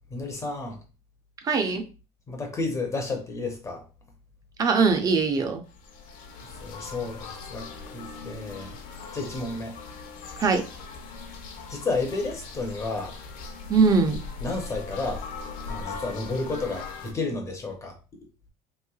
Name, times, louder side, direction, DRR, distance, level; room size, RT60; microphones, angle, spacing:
voice 1, 0.1-0.8 2.3-3.8 6.6-7.7 7.9-8.7 9.1-9.8 11.7-13.1 14.4-15.2 15.7-18.0, left 3 dB, 20° left, 0.6 m, -31 dB
voice 2, 1.4-1.8 4.6-5.6 10.4-10.6 13.7-14.2, right 4 dB, 25° right, 0.5 m, -21 dB
sound 1, 5.7-17.1, left 4 dB, 60° left, 0.7 m, -40 dB
3.0 x 3.0 x 2.3 m
cardioid pair, 150°, 16 cm